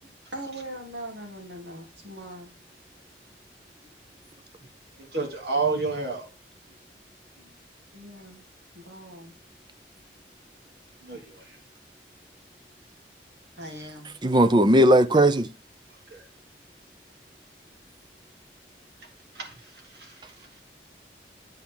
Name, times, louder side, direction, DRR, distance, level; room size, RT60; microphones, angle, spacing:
voice 1, 0.0-2.5 7.4-7.5 7.9-8.4 8.7-9.3 13.6-14.1, right 1 dB, 90° right, 3.6 m, -41 dB
voice 2, 5.0-6.3 11.0-11.6 16.1-16.2 19.3-20.6, right 4 dB, 65° right, 3.2 m, -31 dB
voice 3, 14.2-15.5, right 1 dB, 25° right, 0.6 m, -18 dB
8.4 x 8.3 x 3.9 m
head